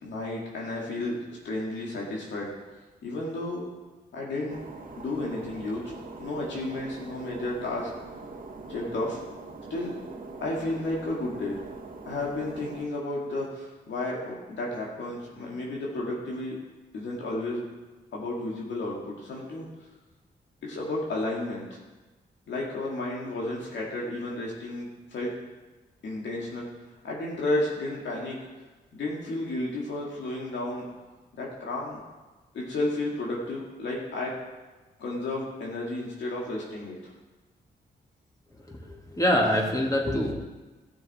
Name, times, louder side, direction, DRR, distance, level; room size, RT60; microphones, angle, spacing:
voice 1, 0.0-1.2 1.4-2.5 3.0-3.7 4.1-4.6 5.0-5.8 6.2-7.9 8.7-9.2 9.7-9.9 10.4-11.6 12.1-16.6 16.9-17.6 18.1-19.7 20.6-21.6 22.5-25.4 26.0-26.7 27.0-28.4 28.9-30.9 31.4-32.0 32.5-34.3 35.0-37.1, left 2 dB, 80° left, -3 dB, 2.1 m, -32 dB
sound 1, 4.5-12.9, right 3 dB, 50° right, 1.6 m, -42 dB
voice 2, 38.7-40.3, equal, 20° left, -1 dB, 2.1 m, -25 dB
14.0 x 6.5 x 4.3 m, 1.2 s
cardioid pair, 70°, 18 cm